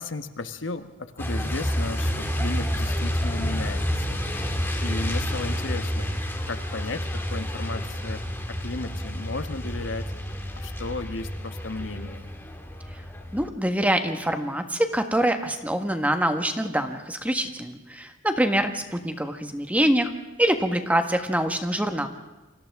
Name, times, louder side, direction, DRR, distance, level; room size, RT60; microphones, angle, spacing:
voice 1, 0.0-4.2 4.8-6.1 6.5-8.2 8.5-10.1 10.6-12.2, left 3 dB, 70° left, 9 dB, 1.2 m, -34 dB
Truck, 1.2-13.5, equal, 10° left, 2.0 m, -29 dB
voice 2, 13.3-20.1 20.4-22.1, right 1 dB, 10° right, 6 dB, 1.4 m, -25 dB
28.5 x 25.0 x 3.6 m, 1.1 s
head